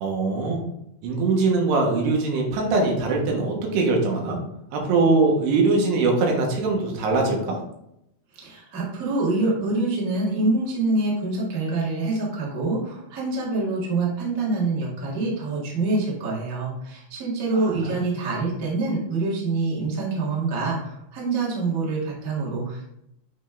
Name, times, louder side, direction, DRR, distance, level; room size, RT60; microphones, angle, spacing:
voice 1, 0.0-0.6 1.0-4.4 4.7-7.6 17.5-18.1, right 3 dB, 85° right, 0 dB, 3.3 m, -22 dB
voice 2, 8.3-22.9, right 3 dB, 50° right, -5 dB, 1.0 m, -26 dB
8.2 x 3.2 x 3.6 m, 0.81 s
omnidirectional pair, 4.7 m